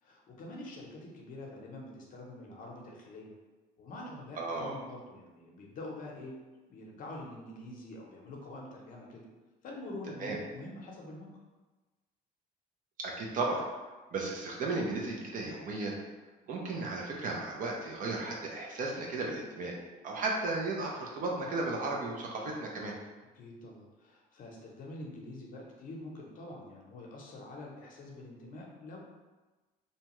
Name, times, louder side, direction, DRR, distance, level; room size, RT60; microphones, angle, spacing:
voice 1, 0.0-3.4 3.8-6.4 6.7-9.3 9.6-11.3 23.3-29.0, left 2 dB, 55° left, -1 dB, 0.7 m, -46 dB
voice 2, 4.4-4.8 10.2-10.4 13.0-13.6 14.1-16.0 16.5-19.7 20.0-22.9, right 3 dB, 50° right, -1 dB, 0.5 m, -34 dB
2.7 x 2.2 x 2.9 m, 1.2 s
cardioid pair, 110°, 17 cm